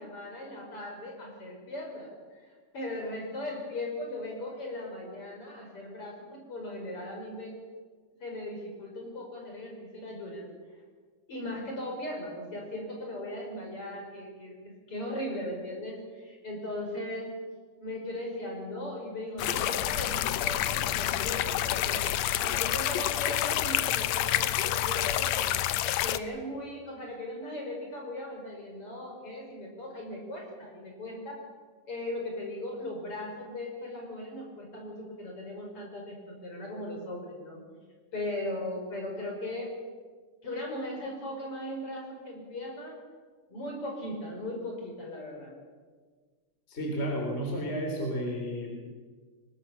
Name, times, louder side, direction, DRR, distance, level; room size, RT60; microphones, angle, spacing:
voice 1, 0.0-7.6 8.2-10.5 11.3-17.3 17.8-22.0 22.4-25.6 26.0-31.4 31.9-37.6 38.1-39.7 40.4-43.0 43.5-45.5, left 1 dB, 40° left, 0 dB, 6.2 m, -38 dB
sound 1, 19.4-26.2, left 12 dB, 75° left, 1.7 m, -28 dB
voice 2, 46.7-48.9, equal, 20° left, 1 dB, 3.5 m, -32 dB
23.0 x 20.5 x 7.3 m, 1.5 s
omnidirectional pair, 3.9 m